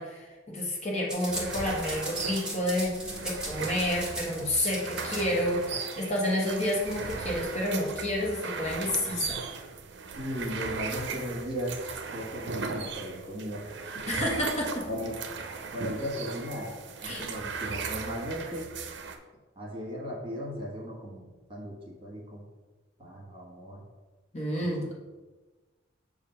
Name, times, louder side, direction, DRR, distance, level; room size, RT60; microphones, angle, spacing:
voice 1, 0.0-2.9 3.2-9.4 14.1-14.9 17.0-17.2 24.3-24.9, left 1 dB, 35° left, -3 dB, 1.2 m, -30 dB
sound 1, 1.1-7.2, right 1 dB, 5° right, 1.2 m, -38 dB
sound 2, 1.3-19.2, right 5 dB, 60° right, 0.6 m, -38 dB
voice 2, 10.2-11.7 12.1-13.7 14.9-15.1 15.7-16.7 17.0-18.7 19.6-22.4 23.0-23.8 24.6-24.9, equal, 25° right, -3 dB, 1.5 m, -37 dB
7.0 x 2.5 x 5.6 m, 1.2 s
head